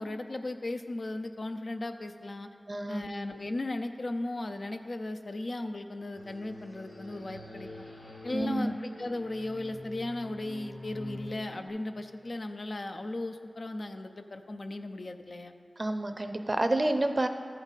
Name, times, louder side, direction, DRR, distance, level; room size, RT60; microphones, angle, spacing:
voice 1, 0.0-2.5 2.9-7.7 8.2-15.5, left 2 dB, 60° left, 7 dB, 0.5 m, -36 dB
voice 2, 2.7-3.1 8.3-8.7 15.8-17.3, right 1 dB, 45° right, 8 dB, 0.5 m, -29 dB
sound 1, 6.1-11.7, left 1 dB, 90° left, 2.1 m, -45 dB
13.5 x 5.4 x 4.1 m, 2.3 s
wide cardioid pair, 50°, 0 cm